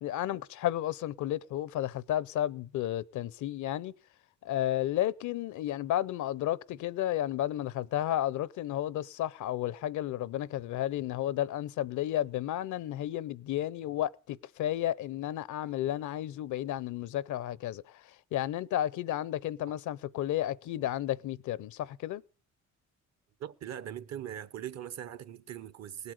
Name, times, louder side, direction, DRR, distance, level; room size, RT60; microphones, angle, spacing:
voice 1, 0.0-3.9 4.4-22.2, left 12 dB, 75° left, 0.6 m, -32 dB
voice 2, 23.4-26.1, right 10 dB, 60° right, 0.8 m, -41 dB
19.0 x 8.2 x 6.4 m
cardioid pair, 90°, 30 cm